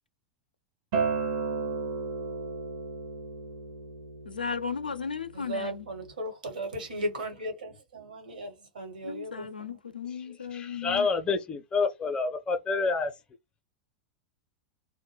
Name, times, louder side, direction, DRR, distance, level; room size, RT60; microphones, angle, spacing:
Acoustic guitar, 0.9-6.1, right 5 dB, 45° right, 0.6 m, -34 dB
voice 1, 4.3-5.8 9.0-11.1, left 6 dB, 80° left, 0.4 m, -35 dB
voice 2, 5.3-9.8, right 1 dB, 70° right, 1.0 m, -36 dB
voice 3, 10.5-13.1, left 4 dB, 20° left, 0.5 m, -28 dB
2.1 x 2.1 x 3.1 m
figure-of-eight pair, 90°, 5 cm